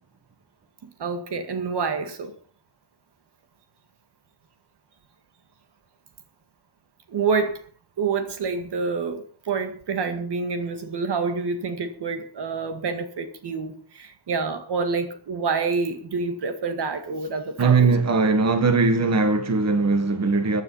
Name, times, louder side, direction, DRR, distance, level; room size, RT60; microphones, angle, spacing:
voice 1, 0.8-2.3 7.1-7.6 8.0-17.9, right 4 dB, 75° right, 2.1 m, -27 dB
voice 2, 17.6-20.6, right 4 dB, 40° right, 1.7 m, -20 dB
15.0 x 9.8 x 5.8 m
wide cardioid pair, 170°, 40 cm